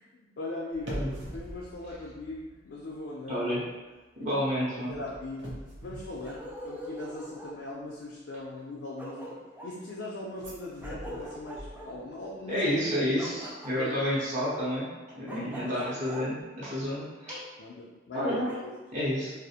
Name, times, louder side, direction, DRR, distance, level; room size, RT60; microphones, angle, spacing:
voice 1, 0.0-3.5 4.2-4.3 4.8-9.4 9.6-12.7 13.8-14.0 15.3-16.3 17.6-18.7, left 2 dB, 75° left, -4 dB, 0.4 m, -40 dB
sound 1, 0.7-3.0 3.3-3.6 4.9-7.1 10.4-12.3 12.5-12.6, equal, 85° right, 0.6 m, -43 dB
voice 2, 3.3-3.6 4.2-4.9 12.5-17.4 18.1-18.5 18.9-19.3, equal, 40° right, -8 dB, 0.7 m, -30 dB
Bark, 6.2-7.6 8.6-8.7 9.0-9.7 10.8-11.9 13.2-14.2 15.3-16.2 17.3-17.4 18.4-18.6, right 1 dB, 10° right, 0.3 m, -42 dB
2.4 x 2.0 x 2.7 m, 1.2 s
head